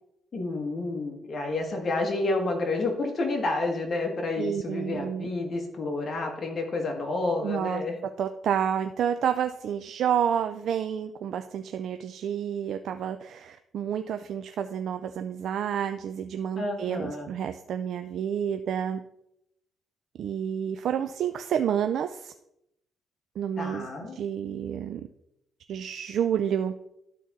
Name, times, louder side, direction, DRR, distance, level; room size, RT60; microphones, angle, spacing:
voice 1, 0.3-7.9 16.6-17.3 23.6-24.2, left 2 dB, 40° left, 1 dB, 1.6 m, -30 dB
voice 2, 4.4-5.3 7.4-7.8 8.2-19.0 20.2-22.3 23.4-23.9 24.1-25.1 25.7-26.7, right 8 dB, 70° right, 8 dB, 0.4 m, -29 dB
12.0 x 4.1 x 3.7 m, 0.81 s
cardioid pair, 90°, 0 cm